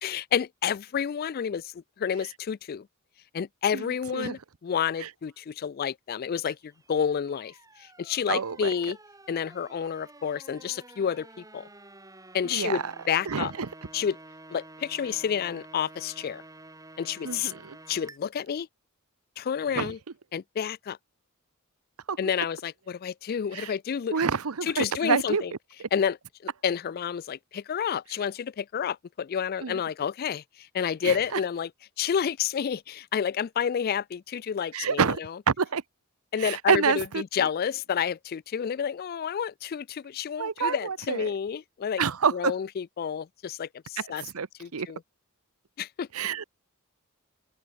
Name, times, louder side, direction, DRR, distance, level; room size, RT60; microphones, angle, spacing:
voice 1, 0.0-2.9 3.3-7.5 7.8-9.0 9.3-11.7 12.3-13.5 13.9-14.2 14.5-16.4 17.0-17.5 17.9-18.7 19.4-20.0 20.3-21.0 22.2-24.2 24.6-25.5 25.9-26.2 26.4-31.7 32.0-35.4 36.3-42.0 42.3-44.3 44.6-45.0 45.8-46.1, left 7 dB, 45° left, 0.3 m, -30 dB
sound 1, 6.5-18.2, right 2 dB, 15° right, 7.5 m, -50 dB
voice 2, 8.3-8.7 12.5-12.9 13.3-13.7 17.2-17.8 19.7-19.9 22.1-22.2 23.5-23.7 24.1-25.4 29.6-29.8 31.0-31.1 34.7-35.2 35.5-35.8 36.4-37.2 40.4-41.3 42.0-42.5 44.0-44.1 44.3-44.5 44.7-44.9 46.1-46.5, right 6 dB, 75° right, 0.8 m, -27 dB
open air
head